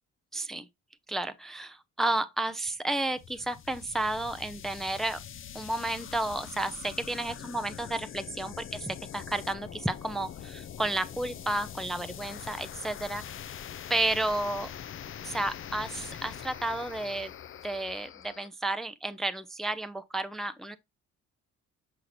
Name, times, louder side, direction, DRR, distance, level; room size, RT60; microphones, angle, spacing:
voice 1, 0.3-0.7 1.1-5.2 5.5-13.2 13.9-14.7 15.2-17.3 17.6-20.8, right 2 dB, ahead, 0.6 m, -32 dB
sound 1, 3.2-18.5, left 9 dB, 45° left, 0.5 m, -43 dB
6.4 x 5.9 x 2.6 m
cardioid pair, 90°, 30 cm